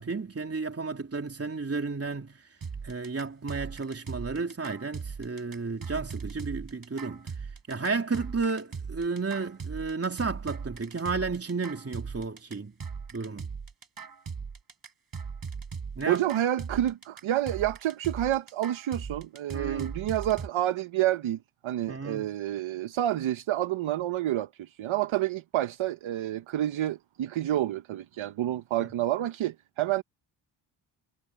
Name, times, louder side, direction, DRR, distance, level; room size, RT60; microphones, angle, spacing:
voice 1, 0.0-2.4 2.8-7.3 7.7-12.7 13.1-13.4 15.9-16.2 19.5-19.9 21.9-22.3, right 4 dB, 30° right, 3.2 m, -32 dB
sound 1, 2.6-20.5, right 5 dB, 45° right, 5.7 m, -39 dB
voice 2, 16.1-30.0, right 13 dB, 70° right, 1.2 m, -29 dB
supercardioid pair, 60°, 49 cm